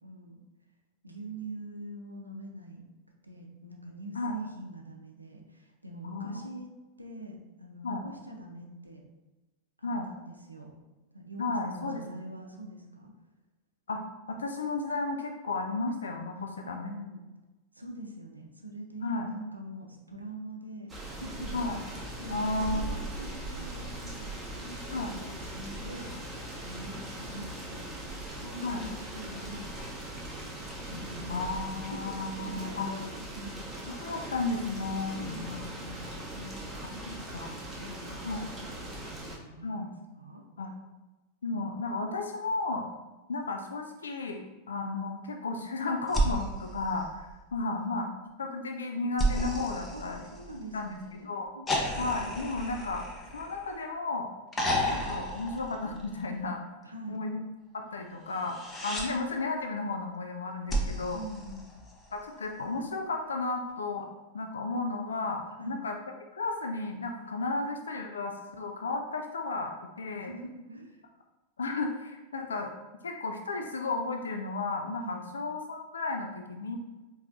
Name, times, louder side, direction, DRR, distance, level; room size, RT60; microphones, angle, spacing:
voice 1, 0.0-0.4 1.0-2.9 3.2-6.7 7.0-9.0 9.8-10.7 11.1-13.1 16.4-16.5 16.8-17.2 17.7-26.2 26.6-30.5 30.9-33.5 34.1-34.3 35.1-35.5 36.3-38.2 38.5-40.4 49.9-51.8 56.8-57.2 61.1-61.7 65.6-65.8 70.2-71.0 75.0-75.2, right 1 dB, 85° right, 1 dB, 0.5 m, -44 dB
voice 2, 6.0-6.4 7.8-8.0 9.8-10.1 11.4-12.0 13.9-16.9 19.0-19.3 21.5-21.8 22.3-23.0 24.9-25.1 28.6-28.8 31.3-32.9 34.0-36.1 36.8-36.9 37.3-37.5 38.2-38.5 39.6-39.9 40.6-40.7 41.4-42.9 43.3-48.1 48.4-50.2 50.7-51.5 52.0-53.1 53.3-54.3 54.9-56.6 57.1-57.5 57.7-58.6 58.8-61.2 62.1-64.1 64.3-66.0 66.3-70.3 71.6-72.7 73.0-76.8, left 3 dB, 70° left, 4 dB, 0.3 m, -33 dB
sound 1, 20.9-39.4, right 1 dB, 15° right, 0.8 m, -40 dB
sound 2, 46.1-47.7 49.2-50.9 51.7-53.9 54.5-56.4 58.3-59.1 60.7-62.2 63.7-63.8, right 1 dB, 15° left, 0.6 m, -32 dB
4.3 x 3.0 x 2.5 m, 1.1 s
figure-of-eight pair, 90°, 0 cm